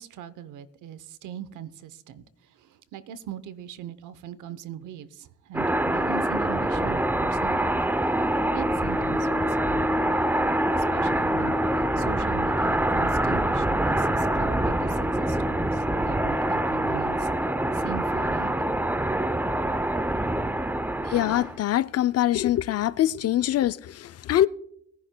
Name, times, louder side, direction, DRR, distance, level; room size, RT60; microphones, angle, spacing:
voice 1, 0.0-7.8 8.5-17.3 17.7-18.5, right 9 dB, 80° right, 0.8 m, -41 dB
sound 1, 5.5-21.6, right 1 dB, 5° right, 0.6 m, -25 dB
voice 2, 21.1-24.5, left 12 dB, 55° left, 0.5 m, -24 dB
21.5 x 10.5 x 2.2 m
cardioid pair, 90°, 30 cm